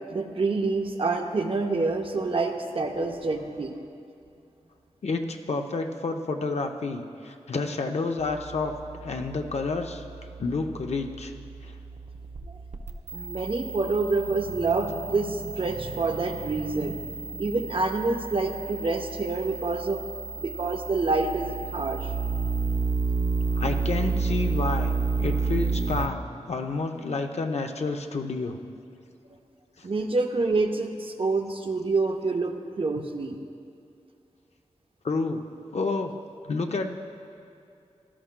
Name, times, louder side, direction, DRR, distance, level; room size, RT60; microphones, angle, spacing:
voice 1, 0.1-3.7 13.1-17.0 17.4-20.0 20.4-22.1 29.8-33.4, right 3 dB, 50° right, 4 dB, 0.7 m, -27 dB
voice 2, 5.0-8.7 9.0-10.0 10.4-11.3 11.6-11.7 23.5-28.6 29.8-29.9 35.0-35.4 35.7-36.1 36.4-36.9, left 3 dB, 65° left, 4 dB, 0.7 m, -30 dB
sound 1, 8.2-26.1, right 4 dB, 90° right, 0.7 m, -31 dB
17.5 x 12.0 x 2.2 m, 2.5 s
wide cardioid pair, 105°, 12 cm